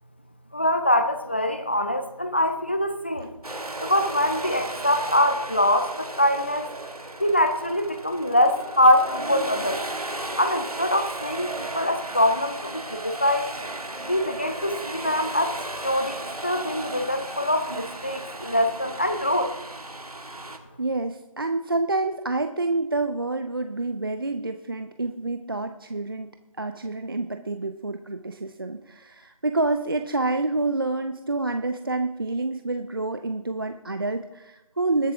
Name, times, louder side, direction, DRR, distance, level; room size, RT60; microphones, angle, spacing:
voice 1, 0.5-3.3 3.8-6.7 7.2-9.8 10.4-13.5 14.1-19.5, left 1 dB, 20° left, 8 dB, 0.5 m, -23 dB
sound 1, 3.4-20.6, right 2 dB, 85° right, 1.6 m, -35 dB
voice 2, 20.8-26.3 26.6-35.1, right 2 dB, 40° right, 8 dB, 0.5 m, -28 dB
20.0 x 8.2 x 3.4 m, 0.98 s
figure-of-eight pair, 165°, 19 cm